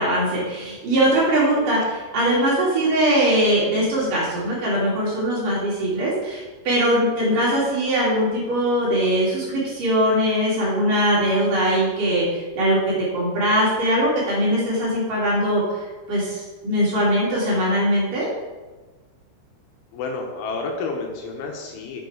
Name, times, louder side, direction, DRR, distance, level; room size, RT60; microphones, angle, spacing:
voice 1, 0.0-1.8 2.1-12.8 13.1-15.8 16.1-18.3, equal, 50° right, -6 dB, 3.5 m, -21 dB
voice 2, 19.9-22.0, left 3 dB, 85° left, 2 dB, 3.5 m, -30 dB
7.4 x 7.2 x 4.8 m, 1.2 s
omnidirectional pair, 5.5 m